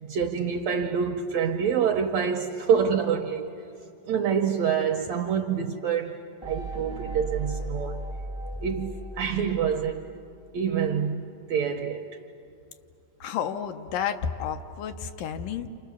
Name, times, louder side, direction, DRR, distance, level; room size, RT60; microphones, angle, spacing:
voice 1, 0.0-3.5 4.1-8.0 8.6-10.1 10.5-12.1, right 7 dB, 75° right, 1.6 m, -26 dB
sound 1, 6.4-10.2, right 2 dB, 25° right, 0.5 m, -36 dB
voice 2, 13.2-15.7, left 8 dB, 75° left, 2.4 m, -31 dB
29.0 x 28.0 x 7.0 m
omnidirectional pair, 4.0 m